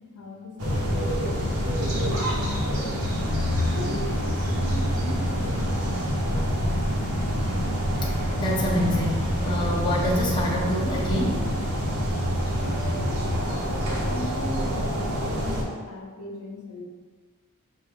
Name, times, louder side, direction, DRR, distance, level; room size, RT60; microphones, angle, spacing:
voice 1, 0.0-3.4 3.7-7.1 12.5-16.9, left 1 dB, 75° left, 0 dB, 0.7 m, -39 dB
sound 1, 0.6-15.6, equal, 80° right, 1.0 m, -26 dB
voice 2, 8.4-11.5, equal, 20° left, -5 dB, 0.7 m, -27 dB
6.3 x 2.2 x 3.6 m, 1.4 s
head